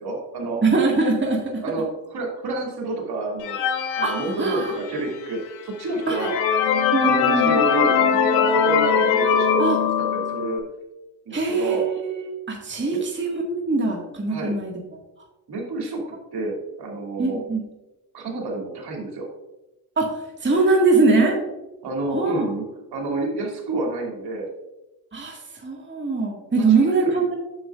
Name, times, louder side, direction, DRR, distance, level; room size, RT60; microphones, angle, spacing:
voice 1, 0.0-0.6 1.6-3.6 4.0-6.3 7.0-9.6 10.0-10.6 11.3-11.9 12.9-13.0 14.3-14.5 15.5-16.0 16.3-17.4 18.1-19.3 21.8-22.7 22.9-24.5 26.7-27.2, right 2 dB, 60° right, -1 dB, 2.6 m, -29 dB
voice 2, 0.6-1.6 4.0-4.1 4.4-4.7 6.1-6.4 6.9-7.6 9.6-9.8 11.3-14.7 17.2-17.6 20.0-21.4 22.1-22.5 25.1-27.3, right 3 dB, 25° right, -1 dB, 1.9 m, -22 dB
sound 1, 3.4-5.1 5.6-5.7 6.1-10.6, left 7 dB, 90° left, 0.8 m, -21 dB
9.2 x 7.3 x 2.5 m, 1.0 s
hypercardioid pair, 45°, 43 cm